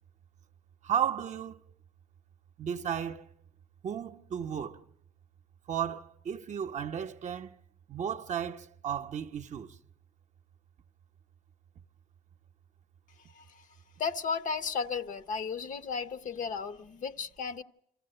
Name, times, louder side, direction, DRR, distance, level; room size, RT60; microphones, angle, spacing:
voice 1, 0.8-1.6 2.6-3.3 3.8-4.8 5.7-7.6 7.9-9.8, right 8 dB, 45° right, 0.8 m, -34 dB
voice 2, 13.3-13.7 14.0-17.6, left 5 dB, 50° left, 0.8 m, -34 dB
26.5 x 15.0 x 7.8 m
cardioid pair, 110°, 17 cm